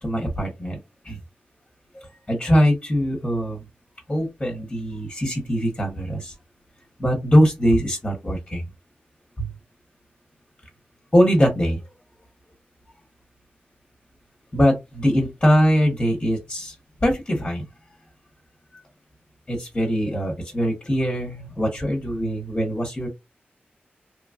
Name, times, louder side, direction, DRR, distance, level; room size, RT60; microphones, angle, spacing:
voice 1, 0.0-0.8 1.0-1.2 1.9-3.6 4.1-6.3 7.0-8.6 9.4-9.5 11.1-11.8 14.5-16.7 17.0-17.6 19.5-23.1, equal, 15° left, 0 dB, 0.9 m, -22 dB
2.9 x 2.3 x 2.4 m, 0.21 s
wide cardioid pair, 130°, 4 cm